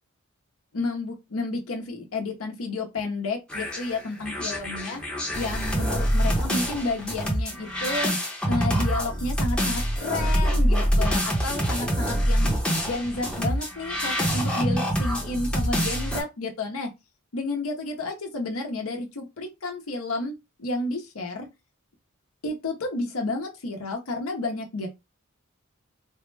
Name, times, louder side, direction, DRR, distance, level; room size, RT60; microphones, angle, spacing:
voice 1, 0.7-5.0 5.3-8.1 8.5-12.6 12.8-16.9 17.3-20.3 20.6-21.5 22.4-24.9, left 2 dB, 80° left, 0.7 m, -31 dB
sound 1, 3.5-16.2, equal, 5° left, 0.8 m, -25 dB
3.4 x 2.1 x 3.2 m
head